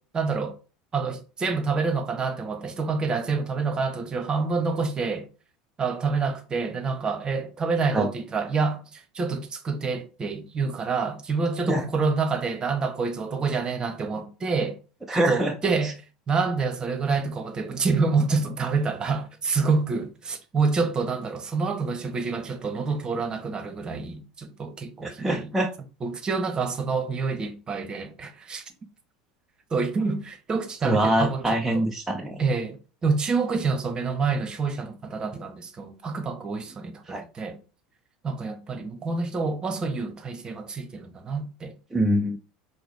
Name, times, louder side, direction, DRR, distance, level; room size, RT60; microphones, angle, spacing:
voice 1, 0.1-0.6 0.9-5.3 5.8-14.8 15.1-15.9 16.3-25.5 26.0-28.6 29.7-31.9 32.4-37.6 38.2-41.7, right 4 dB, 30° right, 1.0 m, -27 dB
voice 2, 15.1-15.5 15.8-15.9 25.0-25.7 30.8-32.5 37.1-37.2 41.9-42.4, right 1 dB, 10° right, 0.6 m, -24 dB
5.9 x 2.2 x 3.4 m
hypercardioid pair, 85°, 3 cm